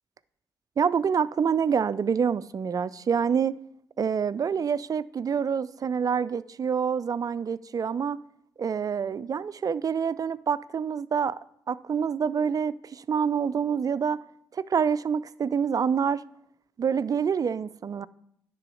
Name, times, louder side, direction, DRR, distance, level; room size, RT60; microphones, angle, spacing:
voice 1, 0.8-3.6 4.0-8.2 8.6-11.4 11.7-14.2 14.5-16.2 16.8-18.1, right 7 dB, 40° right, 0.3 m, -26 dB
10.0 x 3.8 x 6.3 m
hypercardioid pair, 45°, 9 cm